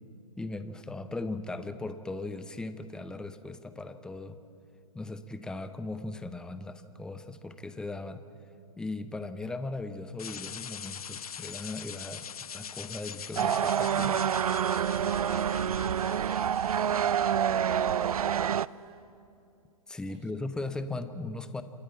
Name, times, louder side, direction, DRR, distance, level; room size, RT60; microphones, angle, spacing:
voice 1, 0.4-4.4 4.9-8.2 8.8-12.3 12.5-14.3 19.9-21.6, left 2 dB, 5° left, 11 dB, 0.7 m, -38 dB
sound 1, 10.2-18.2, left 7 dB, 85° left, 0.4 m, -43 dB
sound 2, 13.4-18.7, right 8 dB, 80° right, 0.4 m, -27 dB
voice 2, 17.1-19.1 20.1-20.4 20.7-20.8, right 4 dB, 55° right, 7 dB, 2.6 m, -50 dB
28.0 x 10.5 x 8.9 m, 2.6 s
hypercardioid pair, 125°, 19 cm